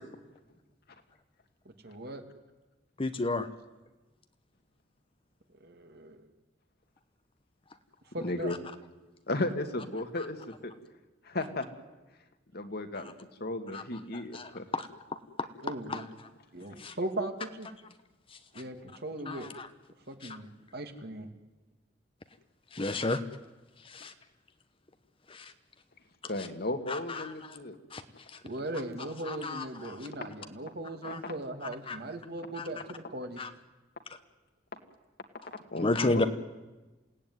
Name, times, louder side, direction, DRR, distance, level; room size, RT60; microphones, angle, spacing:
voice 1, 1.8-2.2 5.6-6.2 8.1-8.5 15.6-16.1 16.5-17.7 18.5-19.5 20.1-21.3 28.4-33.4, right 1 dB, 55° right, 6 dB, 2.4 m, -38 dB
voice 2, 3.0-3.5 13.7-13.8 14.3-14.8 15.9-16.0 16.8-16.9 19.3-19.7 22.7-23.2 23.9-24.1 25.3-25.4 27.9-28.0 29.3-30.0 31.0-31.2 31.9-32.0 32.6-32.7 33.4-33.5 35.8-36.3, left 2 dB, 30° left, 9 dB, 0.9 m, -31 dB
voice 3, 8.2-8.6 9.3-10.7 11.2-11.7 12.5-13.1 13.4-14.7 26.2-27.8 31.0-31.1 35.7-36.3, left 2 dB, 55° left, 6 dB, 2.1 m, -34 dB
28.0 x 17.0 x 9.6 m, 1.2 s
head